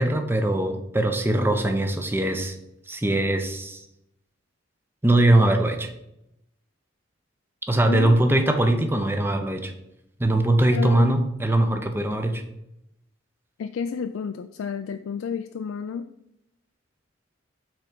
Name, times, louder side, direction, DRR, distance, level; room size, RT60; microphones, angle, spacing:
voice 1, 0.0-2.5 2.9-3.8 5.0-5.9 7.7-9.7 10.2-12.4, right 1 dB, 10° right, 6 dB, 0.6 m, -21 dB
voice 2, 7.9-8.2 10.7-11.1 13.6-16.1, left 6 dB, 85° left, 8 dB, 0.3 m, -30 dB
6.0 x 4.3 x 5.2 m, 0.83 s
head